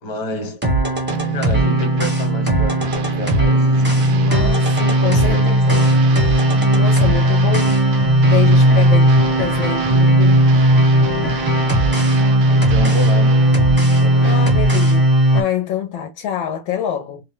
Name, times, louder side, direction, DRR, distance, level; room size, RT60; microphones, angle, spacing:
voice 1, 0.0-0.6 1.3-4.6 5.0-5.9 8.6-8.9 11.1-11.4 12.5-13.4 13.9-14.4, left 1 dB, 50° left, 1.4 m, -30 dB
sound 1, 0.6-15.4, right 1 dB, 10° right, 0.5 m, -15 dB
sound 2, 1.1-14.9, right 8 dB, 75° right, 1.3 m, -29 dB
voice 2, 4.3-5.8 6.7-10.4 14.2-17.2, left 9 dB, 75° left, 1.3 m, -26 dB
3.9 x 2.2 x 3.5 m
omnidirectional pair, 2.2 m